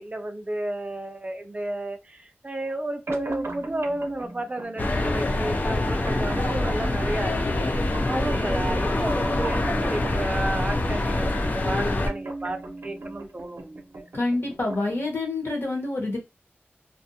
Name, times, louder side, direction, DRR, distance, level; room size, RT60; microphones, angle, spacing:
voice 1, 0.0-7.6 8.1-14.1, right 1 dB, 30° right, 0.4 m, -32 dB
sound 1, 3.1-15.1, right 2 dB, 75° right, 0.6 m, -38 dB
sound 2, 4.8-12.1, left 2 dB, 40° left, 0.4 m, -25 dB
voice 2, 14.1-16.2, left 2 dB, 60° left, 1.1 m, -27 dB
2.5 x 2.2 x 2.7 m
wide cardioid pair, 90°, 4 cm